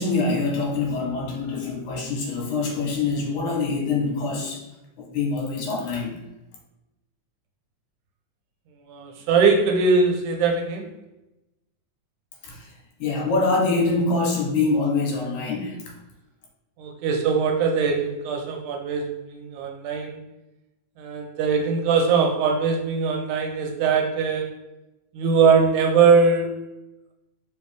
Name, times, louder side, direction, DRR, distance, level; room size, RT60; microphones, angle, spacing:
voice 1, 0.0-4.7 5.0-6.2 12.4-12.7 13.0-15.8, left 3 dB, 75° left, -1 dB, 2.2 m, -25 dB
voice 2, 8.9-10.9 16.8-20.2 21.0-24.6 25.1-26.7, right 5 dB, 85° right, 3 dB, 2.1 m, -21 dB
4.7 x 3.2 x 3.3 m, 0.96 s
omnidirectional pair, 3.5 m